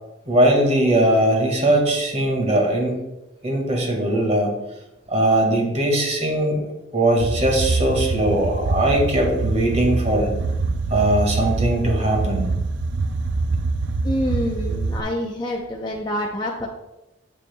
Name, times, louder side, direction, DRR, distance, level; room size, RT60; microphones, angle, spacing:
voice 1, 0.3-3.0 3.4-4.5 5.1-6.6 6.9-10.3 10.9-12.5, right 1 dB, 35° right, 0 dB, 1.9 m, -20 dB
sound 1, 7.2-15.0, right 3 dB, 70° right, 0.4 m, -24 dB
voice 2, 14.0-16.7, equal, 25° left, -2 dB, 0.6 m, -26 dB
8.9 x 7.0 x 2.3 m, 0.95 s
head